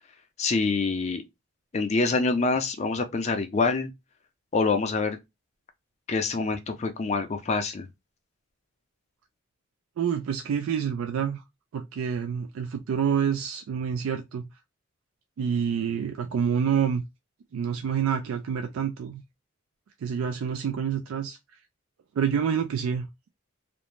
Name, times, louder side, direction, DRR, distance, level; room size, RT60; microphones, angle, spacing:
voice 1, 0.4-1.2 1.7-3.9 4.5-5.2 6.1-7.9, left 3 dB, 35° left, 0.4 m, -26 dB
voice 2, 10.0-11.4 11.7-14.4 15.4-17.0 17.5-19.2 20.0-21.4 22.2-23.1, right 7 dB, 85° right, 0.3 m, -27 dB
2.5 x 2.1 x 3.0 m
head